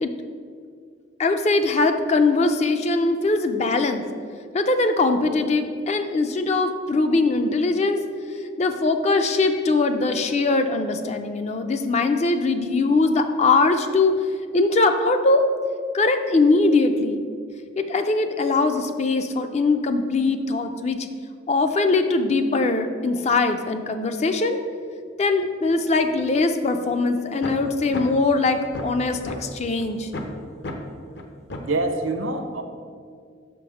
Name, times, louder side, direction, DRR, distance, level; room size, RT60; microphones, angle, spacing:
voice 1, 1.2-4.0 4.5-8.0 8.6-14.1 14.5-15.4 15.9-17.2 17.8-21.1 21.5-24.6 25.2-30.1, left 3 dB, 35° left, 7 dB, 0.4 m, -21 dB
sound 1, 27.4-27.5 27.9-28.0 28.4-29.4 29.8-29.9 30.1-30.3 30.6-30.7 31.1-31.2 31.5-31.7, left 2 dB, 55° left, 0.7 m, -32 dB
voice 2, 31.6-32.6, right 2 dB, 80° right, 6 dB, 0.7 m, -25 dB
5.9 x 5.7 x 4.9 m, 2.2 s
head